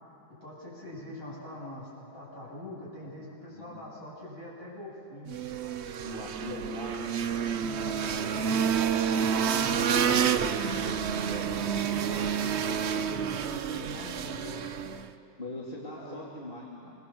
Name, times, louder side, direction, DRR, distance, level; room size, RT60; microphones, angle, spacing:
voice 1, 0.4-5.3 7.5-14.7 16.0-16.2, left 1 dB, 45° left, -6 dB, 8.6 m, -43 dB
voice 2, 3.5-3.8 6.0-7.1 12.6-13.0 13.4-13.5 15.4-16.9, left 1 dB, 30° left, -5 dB, 2.7 m, -41 dB
sound 1, 5.3-15.1, right 7 dB, 60° right, 0.7 m, -29 dB
26.0 x 24.0 x 7.8 m, 2.8 s
omnidirectional pair, 2.0 m